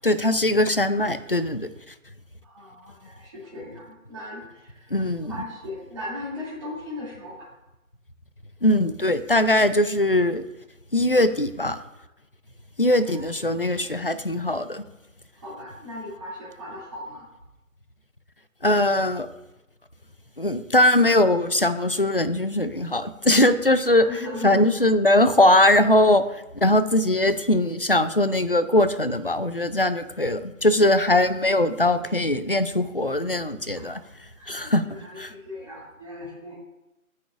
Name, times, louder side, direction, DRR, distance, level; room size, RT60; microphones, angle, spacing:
voice 1, 0.0-1.7 4.9-5.4 8.6-10.4 10.9-11.8 12.8-14.8 18.6-19.3 20.4-26.2 26.5-34.0 34.5-34.8 35.2-35.3, left 1 dB, 45° left, 12 dB, 0.4 m, -21 dB
voice 2, 2.4-4.4 5.3-7.5 13.1-13.2 13.5-13.7 15.4-17.2 24.0-24.6 33.8-33.9 34.4-34.7 35.0-36.6, left 2 dB, 20° right, -5 dB, 2.5 m, -37 dB
16.0 x 6.3 x 2.4 m, 0.95 s
figure-of-eight pair, 170°, 43 cm